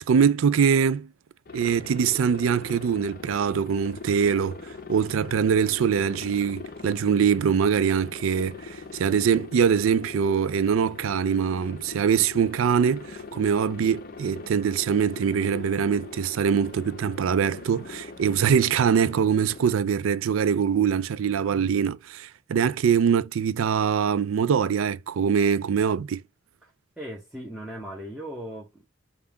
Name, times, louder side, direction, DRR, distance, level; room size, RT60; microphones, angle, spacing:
voice 1, 0.1-1.1 1.5-26.2, right 7 dB, 75° right, 0.4 m, -23 dB
Aircraft, 1.5-19.7, left 4 dB, 45° left, 0.5 m, -41 dB
voice 2, 26.6-28.8, equal, 5° right, 0.7 m, -38 dB
5.5 x 2.3 x 3.4 m
head